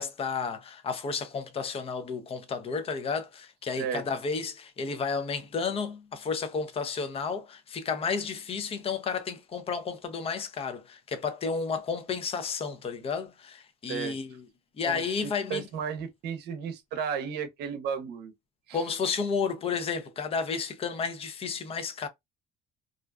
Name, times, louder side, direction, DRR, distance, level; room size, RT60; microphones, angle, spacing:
voice 1, 0.0-14.4 14.8-15.7 18.7-22.1, left 5 dB, 35° left, 0.5 m, -32 dB
voice 2, 14.8-18.3 18.7-18.8, right 7 dB, 75° right, 0.7 m, -34 dB
2.5 x 2.2 x 2.2 m
cardioid pair, 110°, 17 cm